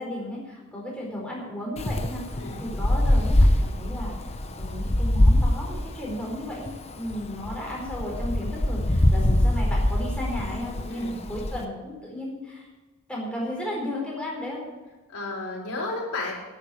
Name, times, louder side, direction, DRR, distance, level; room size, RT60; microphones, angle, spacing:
voice 1, 0.0-4.2 4.5-12.7 13.1-14.6, left 1 dB, 5° left, -3 dB, 4.3 m, -34 dB
Wind, 1.8-11.6, left 1 dB, 30° left, 0.9 m, -23 dB
voice 2, 15.1-16.4, left 2 dB, 85° left, -3 dB, 4.5 m, -32 dB
10.5 x 9.1 x 8.6 m, 1.2 s
head